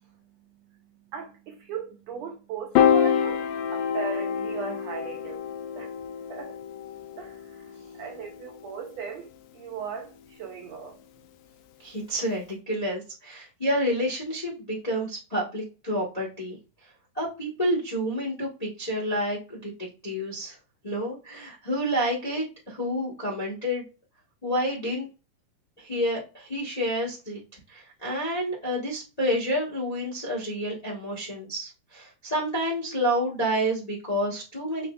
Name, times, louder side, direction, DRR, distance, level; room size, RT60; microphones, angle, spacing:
voice 1, 1.1-5.4 5.7-5.9 6.3-6.6 7.2-9.3 9.5-11.0, right 6 dB, 80° right, 1.5 m, -38 dB
Piano, 2.8-9.1, left 8 dB, 80° left, 2.0 m, -27 dB
voice 2, 11.8-16.6 17.1-19.7 20.0-20.5 20.8-23.8 24.4-25.1 25.8-27.4 27.7-34.9, equal, 60° left, 0.4 m, -29 dB
5.8 x 3.1 x 2.4 m
omnidirectional pair, 3.8 m